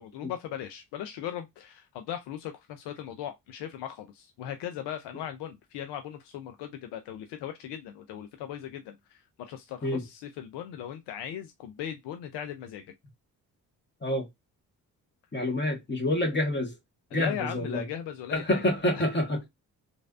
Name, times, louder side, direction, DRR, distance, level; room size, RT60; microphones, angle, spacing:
voice 1, 0.0-12.9 17.1-18.6 18.9-19.0, left 10 dB, 75° left, 0.6 m, -38 dB
voice 2, 15.3-16.7 17.1-17.8 18.3-19.5, left 1 dB, 25° left, 1.4 m, -27 dB
3.1 x 2.6 x 2.3 m
supercardioid pair, 50°, 41 cm